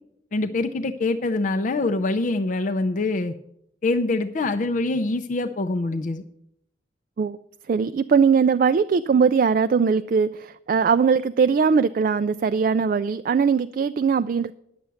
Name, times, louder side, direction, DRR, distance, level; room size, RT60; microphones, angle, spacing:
voice 1, 0.3-3.3 3.8-6.2, left 2 dB, 45° left, 6 dB, 0.5 m, -24 dB
voice 2, 7.7-14.5, right 6 dB, 50° right, 11 dB, 0.3 m, -20 dB
10.5 x 7.6 x 6.9 m, 0.76 s
head